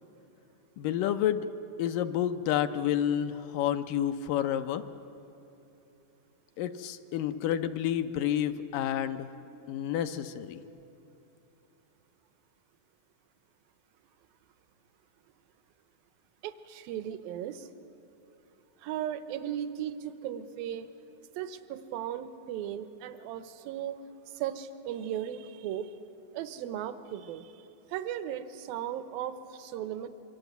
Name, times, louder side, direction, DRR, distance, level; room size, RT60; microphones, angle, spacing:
voice 1, 0.8-1.5 1.8-4.8 6.6-9.3 9.7-10.6, left 10 dB, 75° left, 9 dB, 2.2 m, -29 dB
voice 2, 16.4-17.7 18.8-20.9 21.4-24.0 24.3-26.0 26.3-30.1, right 10 dB, 85° right, 11 dB, 2.7 m, -37 dB
26.0 x 23.5 x 8.0 m, 2.8 s
omnidirectional pair, 4.1 m